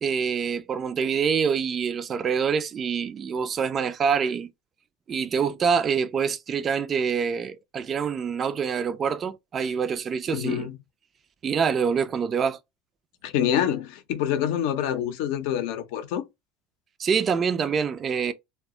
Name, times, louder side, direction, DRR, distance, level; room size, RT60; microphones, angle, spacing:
voice 1, 0.0-4.5 5.1-10.7 11.4-12.6 17.0-18.3, right 6 dB, 35° right, 0.3 m, -26 dB
voice 2, 10.3-10.8 13.2-16.2, left 10 dB, 75° left, 0.5 m, -26 dB
2.1 x 2.0 x 3.6 m
supercardioid pair, 105°, 0 cm